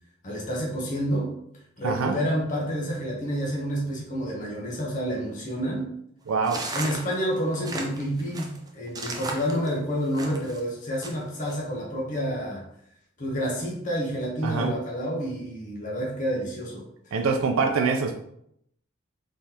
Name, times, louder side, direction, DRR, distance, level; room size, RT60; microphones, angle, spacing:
voice 1, 0.2-1.4 1.8-5.9 6.7-12.6 13.2-17.1, equal, 40° left, -3 dB, 0.8 m, -29 dB
voice 2, 1.8-2.2 6.3-6.6 14.4-14.7 17.1-18.2, right 4 dB, 85° right, 4 dB, 0.4 m, -24 dB
sound 1, 6.4-10.6 11.0-11.5, right 2 dB, 20° right, 0.4 m, -35 dB
3.6 x 3.2 x 2.8 m, 0.73 s
head